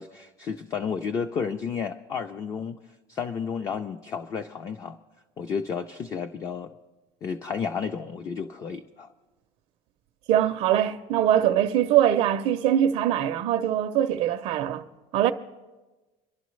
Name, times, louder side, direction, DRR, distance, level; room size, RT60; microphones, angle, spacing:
voice 1, 0.0-2.8 3.1-5.0 5.4-6.7 7.2-9.1, left 6 dB, 25° left, 0.4 m, -32 dB
voice 2, 10.3-14.8 15.1-15.3, right 11 dB, 50° right, 0.5 m, -22 dB
26.5 x 11.5 x 3.1 m
cardioid pair, 175°, 14 cm